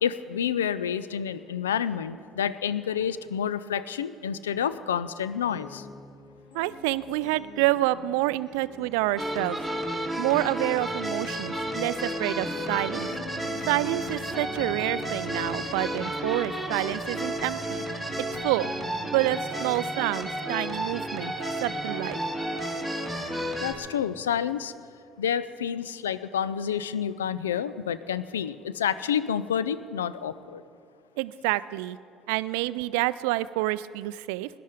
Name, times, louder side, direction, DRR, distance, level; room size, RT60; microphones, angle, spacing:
voice 1, 0.0-5.9 23.6-24.7 25.2-30.6, left 8 dB, 85° left, 15 dB, 0.4 m, -29 dB
sound 1, 5.5-16.9, left 3 dB, 50° left, 2.2 m, -47 dB
voice 2, 6.5-9.6 10.2-13.1 13.7-17.8 18.3-18.7 19.1-21.3 21.6-22.2 31.2-32.0 32.3-34.5, right 17 dB, 75° right, 17 dB, 0.3 m, -28 dB
sound 2, 9.2-23.7, right 1 dB, ahead, 2.2 m, -32 dB
17.5 x 11.0 x 5.1 m, 2.3 s
hypercardioid pair, 60°, 0 cm